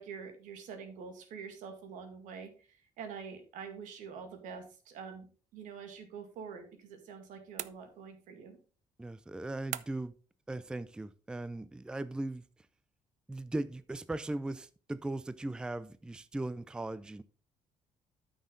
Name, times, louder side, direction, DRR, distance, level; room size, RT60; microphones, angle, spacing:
voice 1, 0.0-5.3 5.5-8.6, right 6 dB, 80° right, 6 dB, 2.1 m, -46 dB
sound 1, 7.6-8.3 9.7-10.2, right 13 dB, 65° right, 0.5 m, -42 dB
voice 2, 9.0-10.1 10.5-12.4 13.3-17.2, right 2 dB, 5° right, 15 dB, 0.4 m, -38 dB
9.1 x 6.3 x 3.8 m, 0.39 s
cardioid pair, 105°, 13 cm